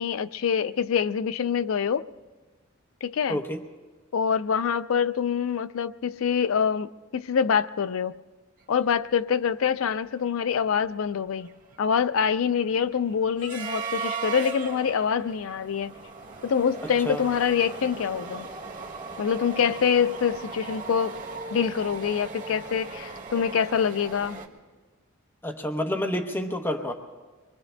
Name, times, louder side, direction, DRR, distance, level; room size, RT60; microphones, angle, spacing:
voice 1, 0.0-2.1 3.0-3.4 4.1-8.2 8.7-11.5 11.8-16.0 16.4-18.5 19.2-21.2 21.5-24.4, left 7 dB, 75° left, 0.4 m, -25 dB
voice 2, 3.3-3.6 17.0-17.2 25.4-26.9, left 1 dB, 10° left, 0.8 m, -28 dB
sound 1, 9.1-9.2 9.4-9.7 10.1-24.5, right 4 dB, 40° right, 1.5 m, -38 dB
25.0 x 23.0 x 2.2 m
head